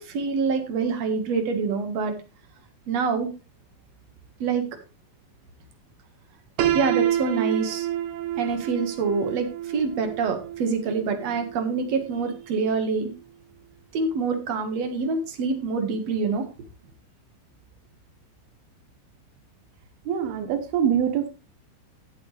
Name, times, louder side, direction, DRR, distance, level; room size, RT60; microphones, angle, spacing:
voice 1, 0.0-2.1 2.9-3.3 4.4-4.7 6.7-7.9 8.4-13.1 13.9-16.5, right 4 dB, 55° right, 6 dB, 2.4 m, -26 dB
Piano, 6.6-12.5, right 11 dB, 70° right, 2.2 m, -29 dB
voice 2, 20.1-21.3, right 8 dB, 90° right, 8 dB, 3.0 m, -24 dB
14.5 x 8.3 x 3.3 m, 0.31 s
omnidirectional pair, 4.3 m